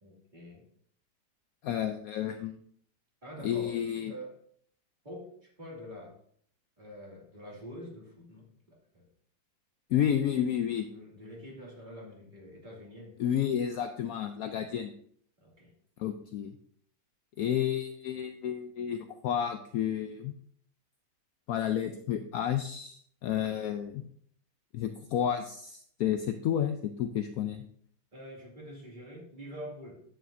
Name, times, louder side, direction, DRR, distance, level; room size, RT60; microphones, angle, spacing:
voice 1, 0.0-0.6 3.2-3.8 4.1-4.4 5.0-5.3 5.6-6.2 6.8-9.1 10.8-13.2 15.4-15.7 28.1-30.0, equal, 25° right, -4 dB, 2.5 m, -46 dB
voice 2, 1.6-2.6 3.4-4.1 9.9-10.8 13.2-14.9 16.0-16.5 17.4-20.3 21.5-24.0 24.7-27.6, left 9 dB, 70° left, 7 dB, 0.9 m, -31 dB
10.0 x 7.8 x 2.6 m, 0.62 s
omnidirectional pair, 1.8 m